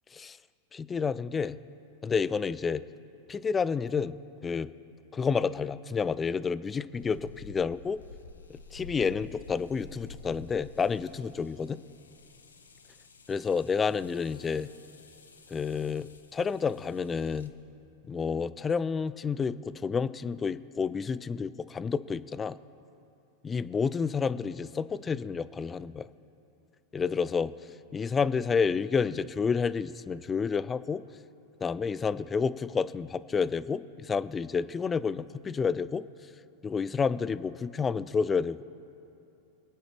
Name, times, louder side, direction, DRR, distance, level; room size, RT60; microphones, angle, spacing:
voice 1, 0.7-1.6 2.0-2.8 3.3-4.1 4.4-4.7 5.1-8.0 8.5-11.8 13.3-14.7 15.5-17.5 18.1-22.5 23.4-26.1 26.9-27.5 27.9-31.0 31.6-36.0 36.6-38.6, left 5 dB, 20° left, 17 dB, 0.4 m, -30 dB
sound 1, 7.0-17.5, left 3 dB, 85° left, 0.9 m, -51 dB
26.0 x 9.1 x 3.4 m, 2.7 s
hypercardioid pair, 95°, 0 cm